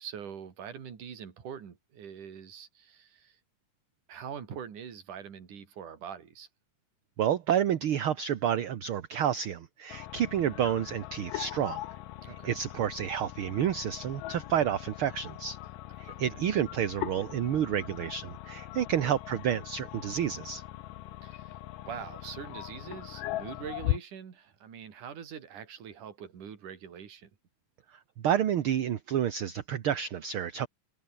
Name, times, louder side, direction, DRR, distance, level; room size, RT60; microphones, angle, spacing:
voice 1, 0.0-3.4 4.1-6.5 12.2-12.6 16.1-16.6 19.0-19.2 21.2-21.6 21.9-27.3, right 8 dB, 70° right, 4.5 m, -43 dB
voice 2, 7.2-11.8 12.3-15.6 16.0-20.6 28.2-30.7, right 9 dB, 55° right, 1.6 m, -29 dB
sound 1, 9.9-24.0, left 15 dB, 90° left, 2.6 m, -40 dB
omnidirectional pair, 3.7 m